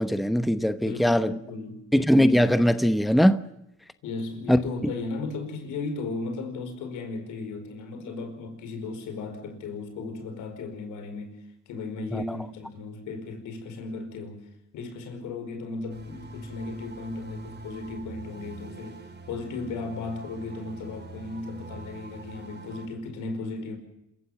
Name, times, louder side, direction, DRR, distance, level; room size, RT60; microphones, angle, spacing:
voice 1, 0.0-1.3 1.9-3.4 4.5-4.6 12.1-12.4, equal, ahead, 1.0 m, -21 dB
voice 2, 0.8-1.9 4.0-11.4 11.7-23.8, left 3 dB, 90° left, 4.9 m, -36 dB
sound 1, 15.9-22.9, right 3 dB, 35° right, 4.7 m, -44 dB
27.0 x 15.0 x 7.2 m
cardioid pair, 90°, 30 cm